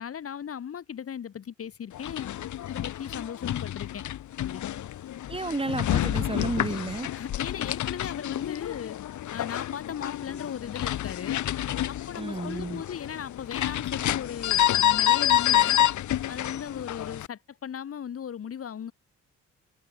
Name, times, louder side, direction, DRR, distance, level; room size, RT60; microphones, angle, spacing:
voice 1, 0.0-2.3 2.7-4.0 4.4-4.6 7.1-9.0 9.3-11.4 11.9-15.8 16.3-18.9, left 8 dB, 50° left, 1.7 m, -37 dB
sound 1, 1.9-17.3, left 12 dB, 70° left, 2.7 m, -28 dB
voice 2, 5.3-7.1 12.2-12.8, right 3 dB, 20° right, 3.1 m, -32 dB
cardioid pair, 90°, 30 cm